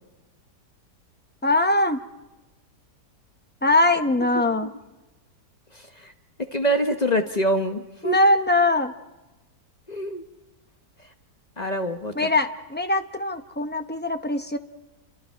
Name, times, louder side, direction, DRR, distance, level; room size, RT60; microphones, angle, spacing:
voice 1, 1.4-2.0 3.6-4.7 8.0-8.9 12.2-14.6, left 2 dB, 10° left, 7 dB, 0.5 m, -21 dB
voice 2, 4.2-4.7 6.0-6.1 6.5-8.2 9.9-10.2 11.6-12.3, equal, 30° left, 6 dB, 0.9 m, -25 dB
29.5 x 26.0 x 4.5 m, 1.1 s
omnidirectional pair, 1.8 m